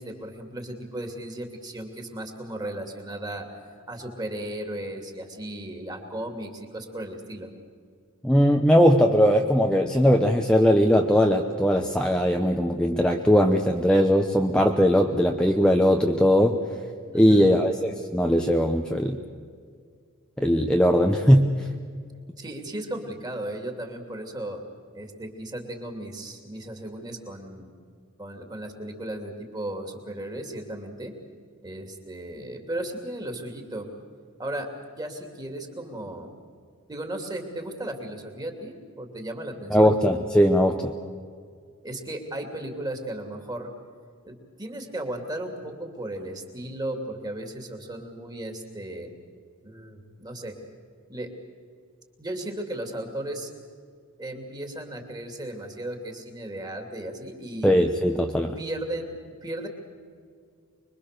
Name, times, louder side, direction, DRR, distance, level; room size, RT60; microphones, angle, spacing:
voice 1, 0.0-3.6 3.9-7.5 17.1-17.4 22.4-24.6 24.9-27.7 28.2-31.1 31.6-33.9 34.4-34.7 34.9-36.3 36.9-39.9 41.8-43.7 44.2-49.1 49.6-50.5 51.1-51.3 52.2-53.5 54.2-57.7 58.6-59.7, right 1 dB, 20° right, 3 dB, 2.8 m, -35 dB
voice 2, 8.2-16.6 17.1-19.2 20.4-21.7 39.7-40.9 57.6-58.6, equal, 5° left, 2 dB, 0.9 m, -20 dB
25.5 x 22.0 x 6.7 m, 2.1 s
head